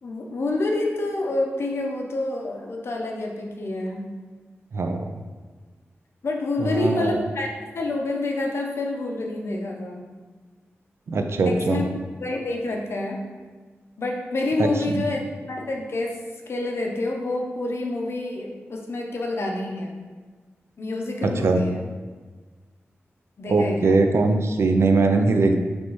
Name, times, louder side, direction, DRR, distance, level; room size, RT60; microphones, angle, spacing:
voice 1, 0.0-4.1 6.2-10.0 11.4-11.8 12.2-13.2 14.0-15.2 15.5-19.9 20.8-21.8 23.4-24.0, left 2 dB, 60° left, 1 dB, 0.6 m, -28 dB
voice 2, 4.7-5.1 6.6-7.2 11.1-11.8 14.6-15.0 21.2-21.6 23.5-25.6, right 3 dB, 65° right, 5 dB, 0.4 m, -21 dB
3.9 x 3.3 x 3.1 m, 1.4 s
wide cardioid pair, 115°, 5 cm